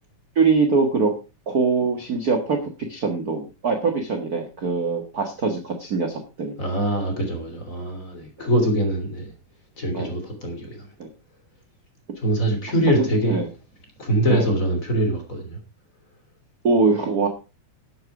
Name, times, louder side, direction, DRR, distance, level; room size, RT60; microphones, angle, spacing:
voice 1, 0.3-1.1 1.5-2.6 2.9-6.5 9.9-10.1 11.0-11.1 13.3-13.5 14.3-14.5 16.6-17.3, right 4 dB, 40° right, 1.4 m, -22 dB
voice 2, 6.6-9.3 9.8-10.9 12.2-13.4 14.0-15.6, right 1 dB, 25° left, 3.3 m, -23 dB
13.0 x 7.8 x 4.8 m
omnidirectional pair, 3.5 m